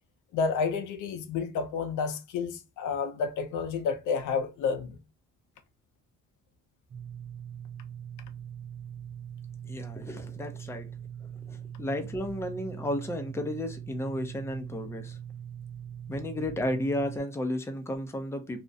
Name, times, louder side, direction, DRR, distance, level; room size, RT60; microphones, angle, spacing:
voice 1, 0.3-5.0, left 5 dB, 80° left, 0.5 m, -30 dB
sound 1, 6.9-17.2, right 9 dB, 40° right, 0.7 m, -42 dB
voice 2, 9.7-10.9 11.5-15.2 16.1-18.6, left 1 dB, 10° left, 0.5 m, -33 dB
2.3 x 2.0 x 2.6 m
cardioid pair, 90°, 30 cm